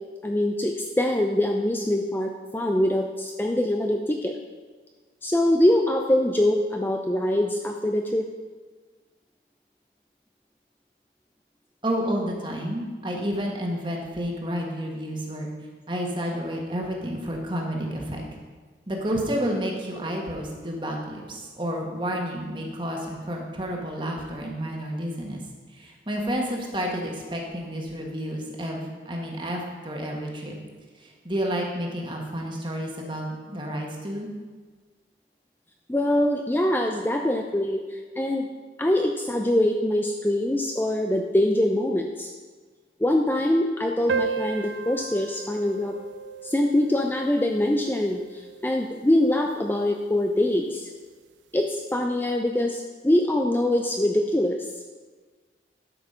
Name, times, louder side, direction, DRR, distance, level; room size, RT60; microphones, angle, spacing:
voice 1, 0.2-4.4 5.2-8.3 35.9-38.5 38.8-42.3 43.0-45.9 46.4-50.9 51.5-54.7, left 1 dB, 10° left, 2 dB, 0.4 m, -24 dB
voice 2, 11.8-15.5 15.9-18.2 18.9-25.4 25.7-30.5 31.0-34.3, equal, 25° right, 0 dB, 1.5 m, -30 dB
sound 1, 44.1-49.1, right 6 dB, 85° right, 0.4 m, -34 dB
11.5 x 5.8 x 5.6 m, 1.5 s
head